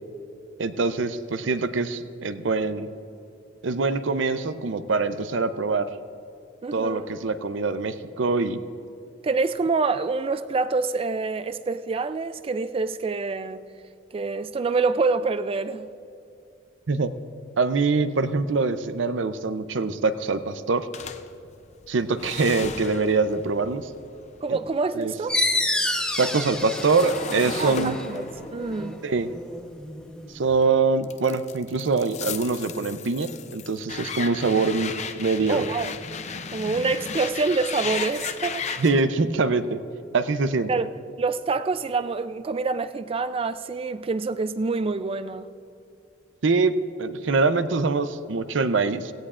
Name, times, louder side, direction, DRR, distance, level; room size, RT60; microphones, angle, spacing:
voice 1, 0.6-2.9 3.6-5.9 6.7-8.6 16.9-17.1 17.6-20.9 21.9-23.9 24.5-24.6 25.0-25.1 26.2-28.0 29.0-29.3 30.3-35.7 38.8-39.8 40.1-40.7 46.4-46.7 47.0-49.1, right 4 dB, 80° right, 0.6 m, -24 dB
voice 2, 6.6-7.2 9.2-13.6 14.1-15.9 24.4-25.4 27.6-28.3 28.5-29.0 35.5-35.9 36.5-38.6 40.7-40.9 41.2-45.5, right 4 dB, 30° right, 0.4 m, -26 dB
sound 1, 20.9-25.2 25.5-30.5 31.0-39.0, left 6 dB, 40° left, 0.5 m, -35 dB
sound 2, 25.3-30.6, left 1 dB, 5° left, 0.9 m, -29 dB
17.0 x 16.0 x 2.5 m
head